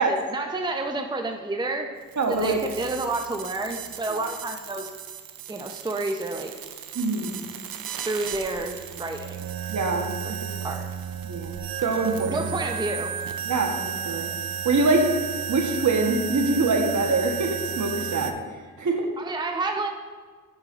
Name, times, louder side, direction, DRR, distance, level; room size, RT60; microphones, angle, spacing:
voice 1, 0.0-2.0 2.3-4.9 5.5-6.5 8.0-9.4 10.6-10.8 12.3-13.1 19.2-19.9, right 2 dB, 10° right, 4 dB, 0.7 m, -29 dB
sound 1, 2.0-18.3, right 8 dB, 70° right, 0.7 m, -34 dB
voice 2, 2.2-2.6 4.1-4.2 6.9-7.4 9.7-10.4 11.2-11.5 11.8-12.5 13.4-14.3 14.6-15.1 15.5-18.3 18.8-19.1, right 3 dB, 55° right, 3 dB, 1.3 m, -24 dB
9.0 x 8.7 x 2.5 m, 1.5 s
supercardioid pair, 40°, 36 cm